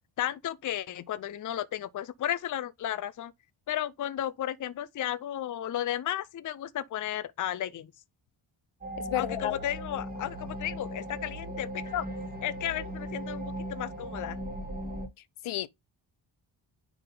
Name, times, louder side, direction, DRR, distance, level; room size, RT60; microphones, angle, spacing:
voice 1, 0.2-3.3 3.7-7.9 9.1-12.1 12.4-14.4, left 11 dB, 40° left, 0.5 m, -34 dB
sound 1, 8.8-15.1, equal, 20° right, 1.9 m, -38 dB
voice 2, 9.0-9.6 15.4-15.7, left 13 dB, 80° left, 0.7 m, -31 dB
9.9 x 3.6 x 3.7 m
wide cardioid pair, 140°, 49 cm